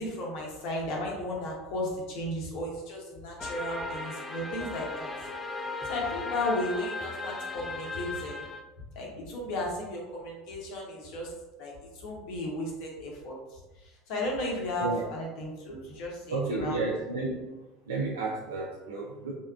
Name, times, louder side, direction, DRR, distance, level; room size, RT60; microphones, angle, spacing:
voice 1, 0.0-5.1 5.8-8.5 8.9-11.3 11.6-17.2, left 1 dB, 55° left, -2 dB, 0.8 m, -35 dB
sound 1, 3.4-8.6, left 3 dB, 15° left, 0.3 m, -37 dB
voice 2, 16.3-17.4 17.9-19.3, right 3 dB, 75° right, -3 dB, 0.4 m, -31 dB
3.4 x 2.3 x 2.3 m, 1.1 s
figure-of-eight pair, 70°, 0 cm